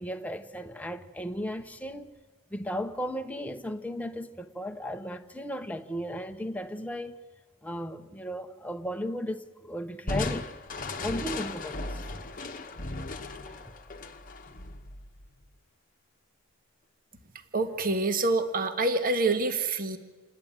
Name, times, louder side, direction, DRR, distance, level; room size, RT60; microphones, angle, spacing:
voice 1, 0.0-2.1 2.5-7.2 7.6-10.5 11.0-12.0, equal, 5° left, 0.8 m, -35 dB
Crushing, 10.1-15.5, left 2 dB, 40° left, 1.0 m, -36 dB
voice 2, 17.5-20.0, right 3 dB, 40° right, 1.2 m, -26 dB
28.0 x 10.5 x 8.8 m
head